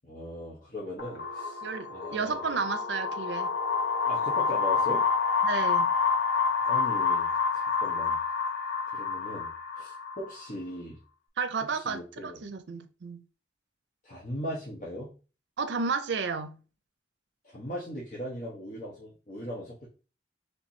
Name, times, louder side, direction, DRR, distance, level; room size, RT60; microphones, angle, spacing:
voice 1, 0.0-1.6 1.9-2.5 4.0-5.0 6.6-8.2 8.9-9.5 9.8-11.0 11.7-12.4 14.0-15.2 17.4-19.9, equal, 45° left, 1.0 m, -39 dB
sound 1, 1.0-10.5, left 5 dB, 80° left, 1.2 m, -28 dB
voice 2, 1.6-3.5 5.4-5.9 11.4-13.2 15.6-16.6, right 5 dB, 80° right, 0.5 m, -32 dB
3.3 x 3.0 x 4.1 m
head